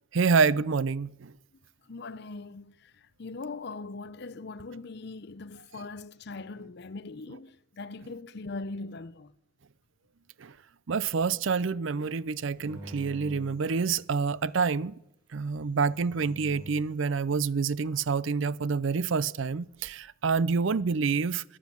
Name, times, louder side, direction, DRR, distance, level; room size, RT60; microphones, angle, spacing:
voice 1, 0.1-1.3 10.4-10.5 10.9-14.9 15.3-21.4, right 5 dB, 65° right, 0.5 m, -27 dB
voice 2, 1.9-9.3, left 3 dB, 55° left, 0.6 m, -41 dB
sound 1, 12.5-14.5 15.5-17.0, equal, 25° right, 7.4 m, -47 dB
14.0 x 10.0 x 8.5 m
head